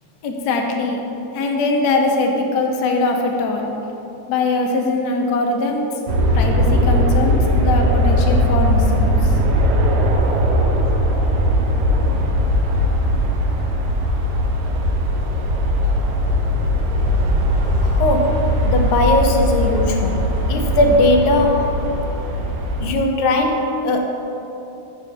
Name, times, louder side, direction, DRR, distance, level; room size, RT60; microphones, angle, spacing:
voice 1, 0.2-1.0 1.3-3.7 4.3-5.8 6.3-9.3, left 3 dB, 60° left, 1 dB, 1.2 m, -21 dB
sound 1, 6.1-22.9, equal, 85° right, 1.7 m, -19 dB
voice 2, 17.8-21.8 22.8-24.0, left 2 dB, 80° left, 2 dB, 1.5 m, -19 dB
6.8 x 4.9 x 6.1 m, 3.0 s
omnidirectional pair, 2.4 m